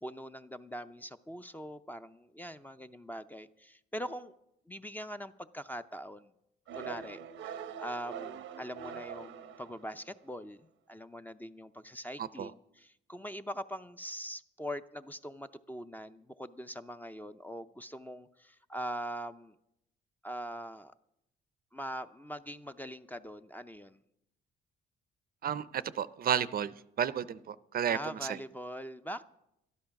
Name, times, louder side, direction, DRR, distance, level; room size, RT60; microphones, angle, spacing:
voice 1, 0.0-4.3 4.7-6.3 6.7-19.6 20.2-20.9 21.7-24.0 27.9-29.2, equal, 10° left, 10 dB, 0.5 m, -42 dB
sound 1, 6.7-10.2, right 8 dB, 85° right, 0.8 m, -43 dB
voice 2, 12.2-12.5 25.4-28.4, right 9 dB, 50° right, 16 dB, 0.5 m, -32 dB
12.5 x 11.0 x 5.8 m, 0.82 s
cardioid pair, 90°, 19 cm